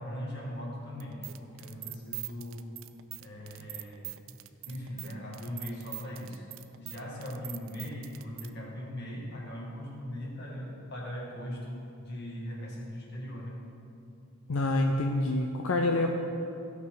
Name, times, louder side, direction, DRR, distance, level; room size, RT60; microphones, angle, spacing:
voice 1, 0.0-2.6 3.2-4.3 4.7-6.4 6.8-13.6, equal, 50° left, -4 dB, 2.2 m, -40 dB
sound 1, 1.0-8.5, right 16 dB, 70° right, 0.4 m, -43 dB
voice 2, 14.5-16.1, left 2 dB, 85° left, 2 dB, 0.6 m, -27 dB
16.0 x 6.0 x 3.9 m, 2.6 s
head